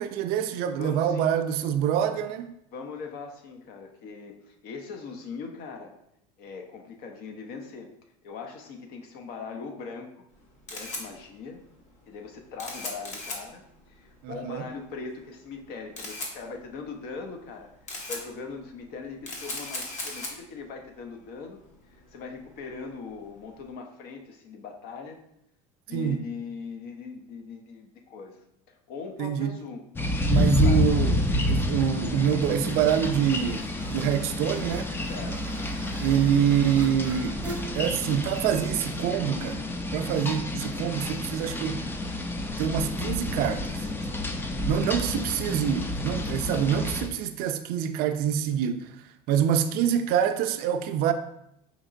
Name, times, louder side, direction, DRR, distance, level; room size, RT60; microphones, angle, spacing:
voice 1, 0.0-2.5 14.2-14.7 25.9-26.3 29.2-29.6 30.3-31.2 31.5-34.9 36.0-37.4 37.7-39.6 39.9-41.9 42.6-43.9 44.7-48.9 49.3-51.1, right 9 dB, 60° right, 0.4 m, -26 dB
voice 2, 0.7-1.3 2.7-5.9 6.4-7.9 8.2-10.2 10.7-11.6 12.1-17.7 18.1-21.6 21.9-25.2 25.9-29.8 30.3-30.9 35.1-35.5, left 5 dB, 60° left, 0.7 m, -40 dB
Camera, 10.3-23.7, left 2 dB, 40° left, 1.1 m, -40 dB
sound 1, 30.0-47.1, left 1 dB, 10° left, 0.3 m, -29 dB
sound 2, 30.9-44.2, right 1 dB, 10° right, 0.7 m, -47 dB
5.1 x 2.9 x 2.5 m
supercardioid pair, 115°, 18 cm